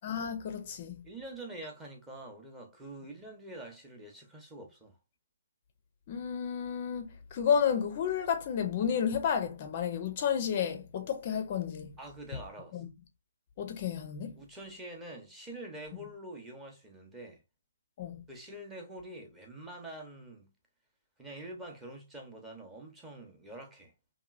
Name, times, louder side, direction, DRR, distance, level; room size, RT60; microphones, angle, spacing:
voice 1, 0.0-0.9 6.1-11.9 12.7-12.9 13.6-14.3 18.0-18.2, left 7 dB, 35° left, 0.4 m, -31 dB
voice 2, 1.0-5.0 12.0-12.8 14.4-17.4 18.3-20.5 21.2-23.9, right 1 dB, 10° right, 0.7 m, -46 dB
2.8 x 2.6 x 2.4 m
hypercardioid pair, 155°, 0 cm